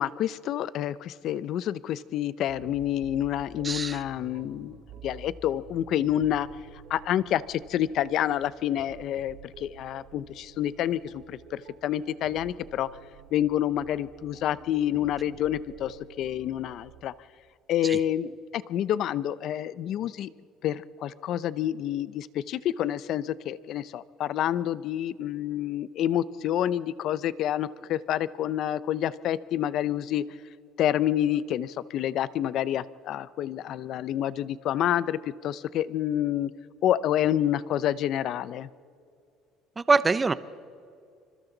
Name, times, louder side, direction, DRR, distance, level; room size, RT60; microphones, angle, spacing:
voice 1, 0.0-6.5 6.9-12.9 13.3-17.1 17.7-20.3 20.6-30.2 30.8-36.5 36.8-38.7, left 11 dB, 50° left, 17 dB, 0.6 m, -28 dB
sound 1, 2.5-17.0, right 7 dB, 90° right, 3.0 m, -50 dB
voice 2, 3.6-4.0 17.8-18.0 39.8-40.3, right 4 dB, 15° right, 15 dB, 0.6 m, -24 dB
27.5 x 25.5 x 4.0 m, 2.4 s
cardioid pair, 160°, 0 cm